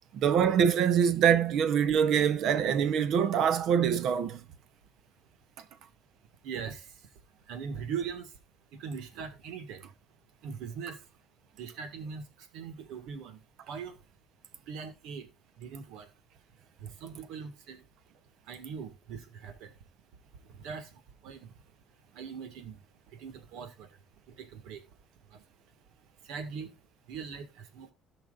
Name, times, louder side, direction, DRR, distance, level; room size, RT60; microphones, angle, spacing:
voice 1, 0.1-4.4, right 8 dB, 55° right, 0.8 m, -24 dB
voice 2, 6.4-6.9 7.5-8.3 8.7-9.8 10.4-11.0 11.6-12.2 12.5-13.4 13.7-13.9 14.7-15.3 15.6-16.1 16.8-17.8 18.5-19.7 20.6-20.9 21.2-21.5 22.2-22.8 23.2-23.9 24.4-24.8 26.3-26.7 27.1-27.5 27.7-27.9, right 6 dB, 85° right, 1.8 m, -40 dB
18.0 x 6.0 x 2.5 m
cardioid pair, 165°, 0 cm